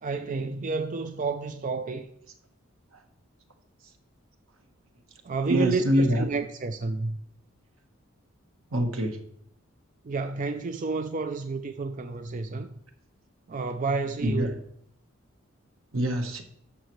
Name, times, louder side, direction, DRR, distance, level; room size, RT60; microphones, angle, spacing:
voice 1, 0.0-2.1 5.2-7.2 10.0-12.7 13.5-14.5, right 4 dB, 40° right, 0.4 m, -30 dB
voice 2, 5.5-6.2 8.7-9.2 14.2-14.5 15.9-16.4, equal, 75° right, 1.3 m, -25 dB
11.0 x 7.2 x 3.1 m
head